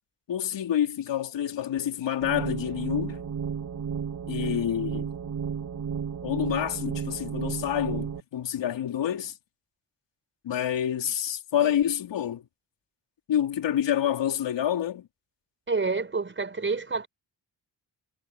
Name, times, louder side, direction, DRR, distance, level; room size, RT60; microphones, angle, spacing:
voice 1, 0.3-3.2 4.3-5.1 6.2-9.4 10.4-12.4 13.3-15.1, left 10 dB, 85° left, 4.1 m, -28 dB
sound 1, 2.2-8.2, right 7 dB, 50° right, 3.4 m, -33 dB
voice 2, 15.7-17.1, right 4 dB, 25° right, 6.3 m, -28 dB
wide cardioid pair, 130°, 42 cm